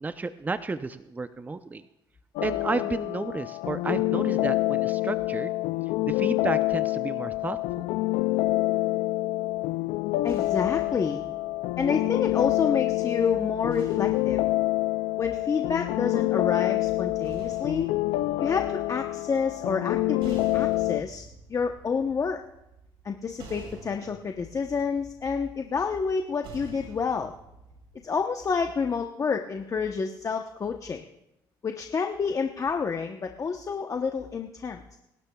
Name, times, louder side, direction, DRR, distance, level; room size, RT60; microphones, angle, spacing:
voice 1, 0.0-1.8 2.4-5.6 6.0-7.8, right 3 dB, 20° right, 11 dB, 0.6 m, -32 dB
sound 1, 2.4-21.0, left 18 dB, 85° left, 0.3 m, -27 dB
sound 2, 9.5-12.8 13.7-16.0 16.9-28.0, right 4 dB, 75° right, 3.8 m, -49 dB
voice 2, 10.2-11.2 11.8-14.4 15.2-17.9 18.4-22.4 23.0-27.3 28.0-31.0 31.6-35.0, left 5 dB, 35° left, 4 dB, 0.9 m, -29 dB
26.0 x 12.5 x 2.3 m, 0.90 s
cardioid pair, 85°, 9 cm